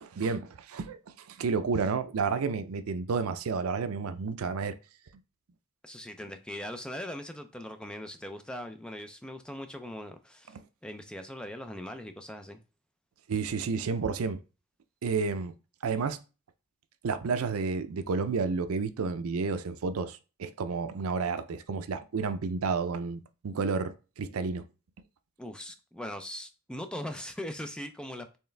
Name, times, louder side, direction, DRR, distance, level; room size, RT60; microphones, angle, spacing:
voice 1, 0.0-1.0 1.3-4.7 13.3-14.4 15.0-15.5 15.8-16.2 17.0-24.6, right 5 dB, 80° right, 0.5 m, -31 dB
voice 2, 5.8-10.6 10.8-12.6 25.4-28.4, left 1 dB, 5° left, 0.4 m, -40 dB
4.5 x 3.2 x 3.3 m
head